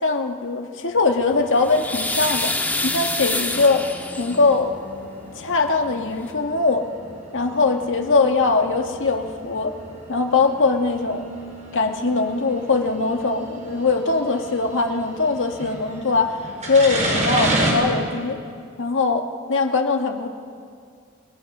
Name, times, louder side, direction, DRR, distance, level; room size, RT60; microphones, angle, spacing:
voice 1, 0.0-2.5 2.8-3.9 4.2-4.8 5.3-6.9 7.3-9.7 10.1-11.3 11.7-16.4 16.6-18.4 18.8-20.3, left 3 dB, 60° left, 4 dB, 1.7 m, -21 dB
sound 1, 0.9-17.7, right 1 dB, 35° right, 5.5 m, -33 dB
sound 2, 1.3-4.6 5.8-5.9 6.2-6.3, left 2 dB, 10° left, 1.9 m, -27 dB
28.5 x 19.5 x 6.1 m, 2.2 s
head